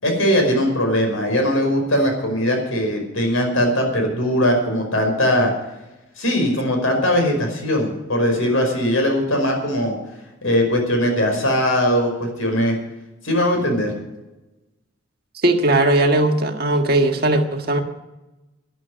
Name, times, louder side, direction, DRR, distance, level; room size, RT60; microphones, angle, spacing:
voice 1, 0.0-5.5 6.2-10.0 10.4-12.8 13.2-13.9, equal, 80° left, 2 dB, 5.4 m, -20 dB
voice 2, 15.4-17.8, right 2 dB, 45° right, 4 dB, 1.6 m, -18 dB
12.5 x 11.5 x 8.0 m, 1.0 s
head